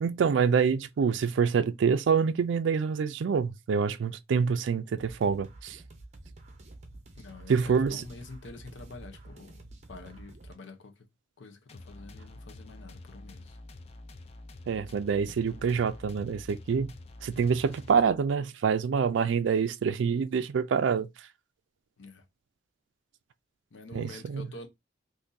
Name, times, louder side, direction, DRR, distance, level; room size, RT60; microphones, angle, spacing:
voice 1, 0.0-5.8 7.5-8.0 14.7-16.9 17.2-21.1 23.9-24.5, right 6 dB, 75° right, 0.3 m, -26 dB
sound 1, 5.0-10.5, right 2 dB, 35° right, 0.6 m, -49 dB
voice 2, 7.2-9.6 9.9-11.1 11.4-13.6 22.0-22.2 23.7-24.7, left 2 dB, 75° left, 0.7 m, -47 dB
sound 2, 11.7-18.4, left 2 dB, 30° left, 0.4 m, -48 dB
3.8 x 2.6 x 2.6 m
head